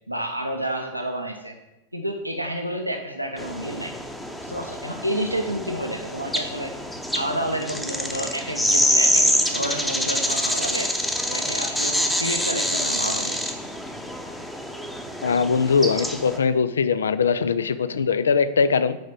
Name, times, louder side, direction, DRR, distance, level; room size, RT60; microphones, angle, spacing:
voice 1, 0.1-1.6 1.9-3.9 4.4-6.7 7.1-10.9 11.3-13.6, right 1 dB, 90° right, 3 dB, 0.6 m, -30 dB
sound 1, 3.4-16.4, equal, 5° left, 0.8 m, -26 dB
voice 2, 15.2-19.0, left 5 dB, 70° left, 14 dB, 0.4 m, -21 dB
6.2 x 4.9 x 6.1 m, 0.96 s
figure-of-eight pair, 90°, 0 cm